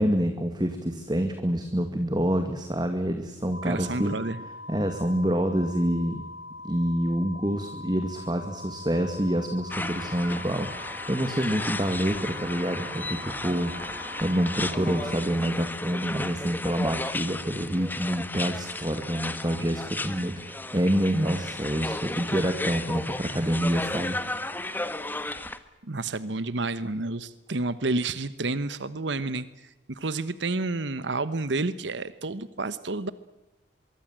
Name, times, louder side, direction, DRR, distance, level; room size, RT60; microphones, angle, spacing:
voice 1, 0.0-4.2 4.7-6.2 6.6-24.2, equal, 25° right, 6 dB, 2.2 m, -27 dB
sound 1, 3.5-15.0, left 2 dB, 90° left, 6.9 m, -42 dB
voice 2, 3.6-4.4 25.8-33.1, right 3 dB, 75° right, 15 dB, 1.1 m, -30 dB
sound 2, 9.7-25.6, left 2 dB, 10° left, 1.5 m, -34 dB
24.5 x 23.5 x 7.6 m, 0.98 s
head